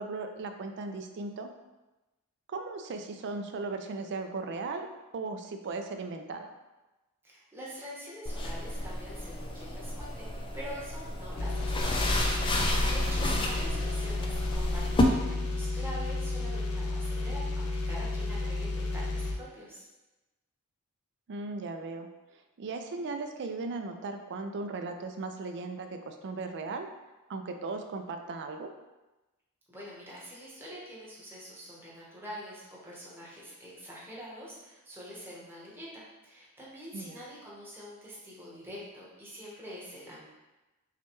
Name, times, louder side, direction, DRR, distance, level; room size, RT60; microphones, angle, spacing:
voice 1, 0.0-1.5 2.5-4.9 5.1-6.5 13.1-13.5 21.3-22.1 22.3-26.9 27.3-28.7 36.9-37.2, right 3 dB, 50° right, 6 dB, 0.4 m, -37 dB
voice 2, 7.2-19.8 29.7-40.3, equal, 10° right, -6 dB, 1.0 m, -45 dB
sound 1, 8.3-15.0, left 1 dB, 20° left, 0.3 m, -31 dB
sound 2, 11.4-19.4, left 2 dB, 75° left, 0.6 m, -32 dB
5.7 x 2.3 x 3.0 m, 1.1 s
head